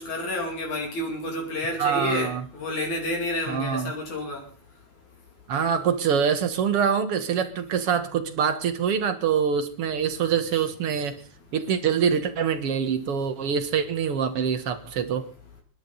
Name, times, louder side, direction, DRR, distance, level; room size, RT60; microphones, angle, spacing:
voice 1, 0.0-4.4, left 1 dB, 60° left, 3.9 m, -30 dB
voice 2, 1.8-2.5 3.5-3.9 5.5-11.2 11.5-15.3, right 7 dB, 55° right, 1.9 m, -25 dB
27.5 x 11.0 x 4.0 m
omnidirectional pair, 3.9 m